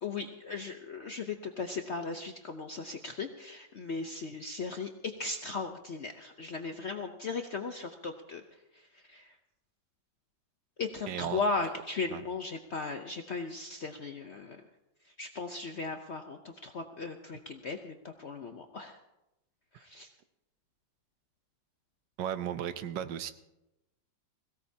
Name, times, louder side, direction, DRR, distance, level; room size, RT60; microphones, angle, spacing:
voice 1, 0.0-8.4 8.7-9.4 10.8-14.6 15.0-19.0 19.7-20.1, left 4 dB, 60° left, 5 dB, 0.7 m, -37 dB
voice 2, 11.1-11.4 12.1-12.2 22.2-23.3, right 10 dB, 75° right, 12 dB, 1.3 m, -35 dB
21.5 x 16.5 x 2.8 m, 0.95 s
omnidirectional pair, 2.0 m